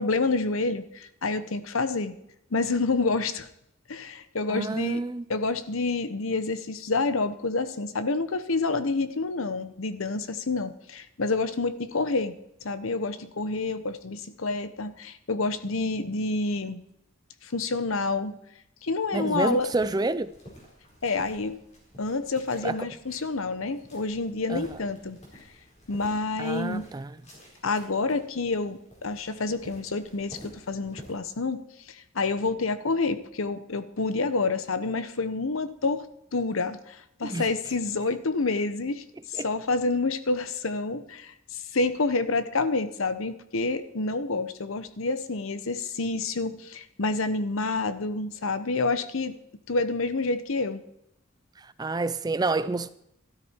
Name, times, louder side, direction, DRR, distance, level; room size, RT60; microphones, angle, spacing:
voice 1, 0.0-2.1 2.5-3.5 3.9-5.0 5.3-12.3 12.6-16.8 17.4-18.4 18.8-19.7 21.0-21.6 22.0-25.2 25.9-26.9 27.6-31.6 31.9-36.1 36.3-49.3 49.7-50.8, left 3 dB, 70° left, 0.9 m, -28 dB
voice 2, 4.5-5.2 19.1-20.3 22.6-22.8 24.5-24.8 26.4-27.2 37.2-37.5 39.3-39.5 51.6-52.9, right 3 dB, 20° right, 0.4 m, -29 dB
sound 1, 19.2-31.1, equal, 30° left, 4.4 m, -51 dB
13.5 x 13.0 x 4.4 m
head